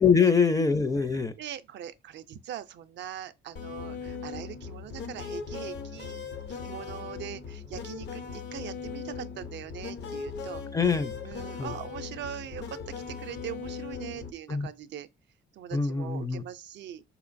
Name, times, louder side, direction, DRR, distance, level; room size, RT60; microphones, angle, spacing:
voice 1, 0.0-1.3 10.7-11.1 11.6-11.7 14.5-14.7 15.7-16.4, left 5 dB, 15° left, 0.4 m, -24 dB
voice 2, 1.1-6.2 6.6-10.6 11.2-15.1 15.5-17.0, right 10 dB, 65° right, 0.4 m, -41 dB
sound 1, 3.6-14.3, left 5 dB, 60° left, 0.6 m, -39 dB
3.8 x 2.9 x 2.5 m
cardioid pair, 90°, 20 cm